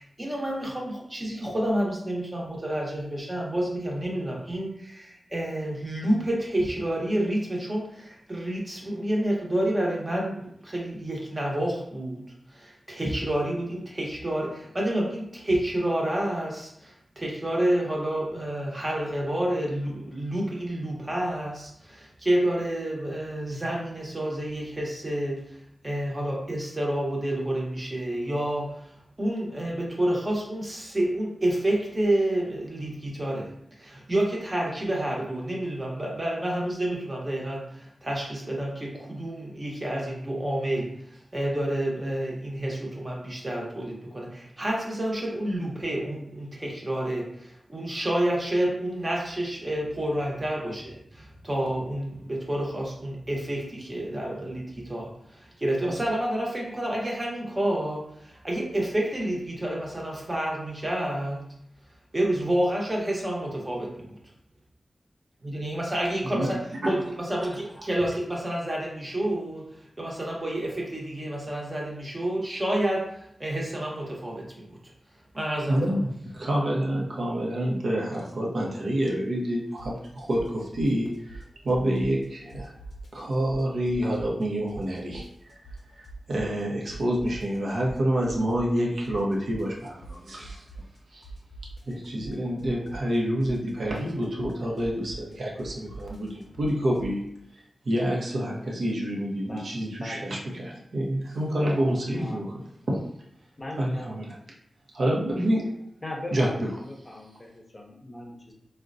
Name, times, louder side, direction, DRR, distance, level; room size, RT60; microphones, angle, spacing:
voice 1, 0.0-25.6 25.8-61.4 62.1-64.2 65.4-74.8 75.3-75.8, right 1 dB, 30° right, -2 dB, 0.9 m, -29 dB
voice 2, 75.7-82.7 83.1-85.6 85.9-90.6 91.1-91.3 91.9-97.2 97.5-102.5 102.9-103.0 103.8-104.4 104.9-105.7 106.3-106.7, equal, 75° right, -3 dB, 0.7 m, -28 dB
sound 1, 79.8-80.1 80.3-82.2 82.5-84.4 84.7-86.6 86.9-91.0 91.2-97.1, right 2 dB, 75° left, 0.5 m, -43 dB
voice 3, 100.0-100.3 102.2-102.8 103.6-104.2 106.0-108.5, left 1 dB, 30° left, 0 dB, 0.6 m, -40 dB
3.7 x 2.1 x 2.5 m, 0.72 s
wide cardioid pair, 65°, 0 cm